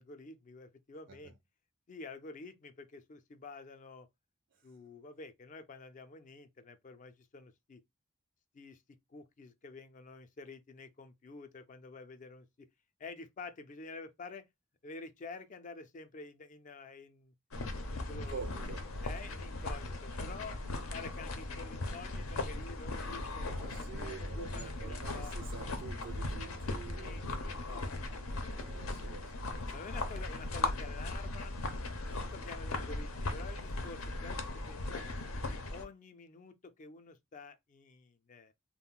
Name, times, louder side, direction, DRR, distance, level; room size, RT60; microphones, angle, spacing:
voice 1, 0.0-1.3 1.9-4.1 4.6-7.8 8.5-8.8 9.1-12.7 13.0-14.5 14.8-17.3 18.1-18.4 19.0-20.6 20.9-25.3 26.4-29.1 29.7-31.5 32.1-35.1 35.7-38.5, left 4 dB, 35° left, 0.4 m, -49 dB
sound 1, 17.5-35.8, left 2 dB, 80° left, 0.6 m, -38 dB
voice 2, 18.1-19.0 23.4-27.5 28.5-29.8, right 5 dB, 60° right, 0.4 m, -48 dB
2.4 x 2.1 x 3.6 m
head